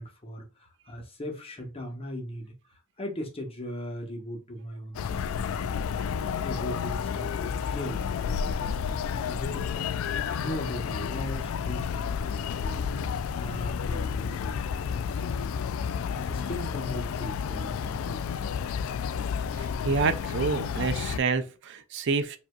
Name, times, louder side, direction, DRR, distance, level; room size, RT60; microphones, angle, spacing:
voice 1, 0.0-2.5 3.0-5.9 6.2-9.9 10.4-12.9 13.4-15.6 16.1-18.2, equal, 30° left, 1.2 m, -39 dB
sound 1, 4.9-21.2, left 7 dB, 85° left, 0.3 m, -31 dB
voice 2, 19.6-22.4, right 4 dB, 60° right, 0.5 m, -28 dB
5.0 x 2.7 x 2.3 m
head